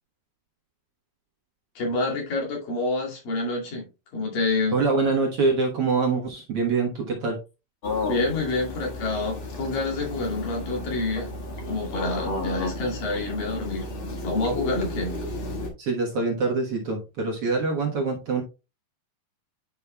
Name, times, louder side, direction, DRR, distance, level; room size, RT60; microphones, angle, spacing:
voice 1, 1.8-3.9 4.1-4.8 8.1-11.3 11.7-13.9 14.2-15.2, left 2 dB, 80° left, -2 dB, 4.0 m, -27 dB
voice 2, 4.7-7.4 15.8-18.4, right 4 dB, 55° right, -1 dB, 1.8 m, -24 dB
sound 1, 7.8-15.7, left 2 dB, 45° left, 2.1 m, -33 dB
9.9 x 5.5 x 2.3 m, 0.29 s
omnidirectional pair, 3.9 m